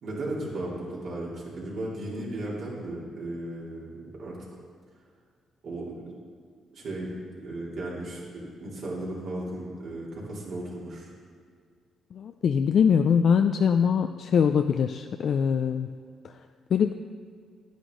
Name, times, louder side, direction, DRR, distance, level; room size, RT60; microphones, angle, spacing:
voice 1, 0.0-4.4 5.6-6.0 6.7-11.1, right 1 dB, 65° right, -5 dB, 3.0 m, -35 dB
voice 2, 12.1-16.0 16.7-16.9, left 7 dB, 60° left, 7 dB, 0.3 m, -23 dB
10.0 x 9.8 x 3.8 m, 2.1 s
cardioid pair, 90°, 0 cm